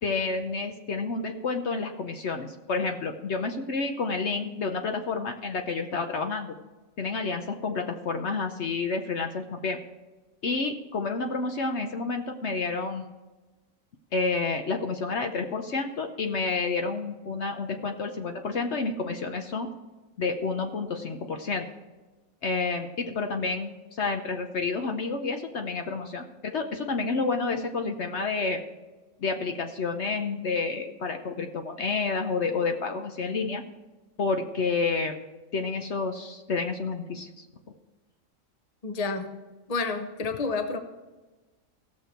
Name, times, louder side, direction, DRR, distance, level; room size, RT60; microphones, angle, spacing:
voice 1, 0.0-6.6 7.0-9.8 10.4-13.1 14.1-19.7 20.2-21.7 22.4-28.6 29.2-33.6 34.2-35.2 35.5-37.5, left 4 dB, 60° left, 4 dB, 1.0 m, -29 dB
voice 2, 38.8-39.3 39.7-40.8, left 4 dB, 30° left, 6 dB, 0.9 m, -29 dB
16.5 x 6.8 x 4.5 m, 1.2 s
omnidirectional pair, 1.4 m